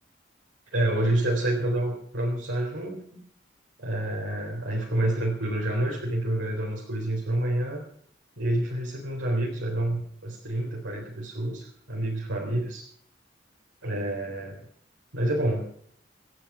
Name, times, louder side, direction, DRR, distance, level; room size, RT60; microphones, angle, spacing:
voice 1, 0.7-3.2 3.8-7.8 8.4-12.8 13.8-14.6 15.1-15.7, right 1 dB, 90° right, -2 dB, 4.1 m, -28 dB
27.0 x 9.1 x 4.9 m, 0.64 s
head